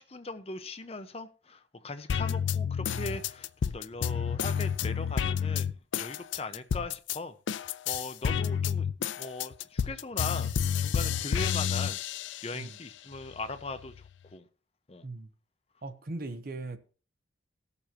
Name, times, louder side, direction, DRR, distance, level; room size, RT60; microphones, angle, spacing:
voice 1, 0.0-8.9 9.2-12.0 12.4-13.9 14.3-14.4 14.9-15.0, left 3 dB, 30° left, 0.6 m, -40 dB
sound 1, 2.1-7.2 7.5-12.7 13.1-14.1, left 7 dB, 75° left, 0.4 m, -30 dB
voice 2, 15.8-16.8, right 2 dB, 50° right, 0.9 m, -39 dB
18.5 x 6.9 x 2.9 m
head